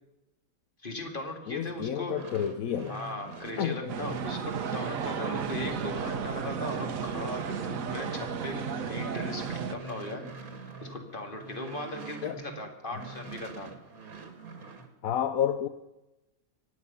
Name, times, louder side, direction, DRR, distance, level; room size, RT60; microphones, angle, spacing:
voice 1, 0.8-2.2 2.9-10.3 10.6-13.7, left 1 dB, 35° left, 4 dB, 2.5 m, -38 dB
voice 2, 1.5-2.9 3.6-3.9 12.2-12.3 15.0-15.7, left 9 dB, 75° left, 9 dB, 1.2 m, -30 dB
sound 1, 2.0-12.6 12.9-14.9, right 4 dB, 90° right, 2.3 m, -45 dB
sound 2, 3.9-9.8, right 6 dB, 70° right, 1.4 m, -33 dB
25.0 x 9.4 x 5.6 m, 0.98 s
omnidirectional pair, 1.5 m